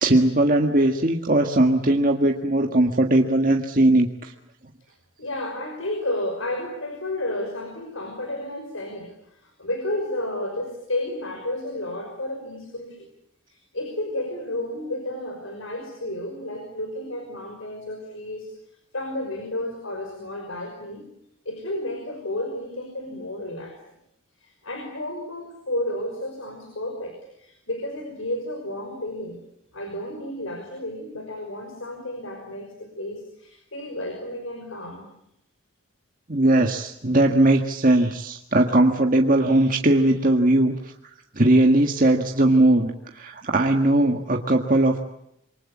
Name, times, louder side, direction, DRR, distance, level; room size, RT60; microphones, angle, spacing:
voice 1, 0.0-4.3 36.3-40.9 41.3-45.1, right 1 dB, 40° right, 3 dB, 1.7 m, -19 dB
voice 2, 5.2-13.1 13.5-18.5 18.9-21.0 21.5-23.8 24.4-29.4 29.7-35.1, left 1 dB, 70° left, 4 dB, 5.6 m, -32 dB
27.0 x 24.0 x 8.5 m, 0.78 s
head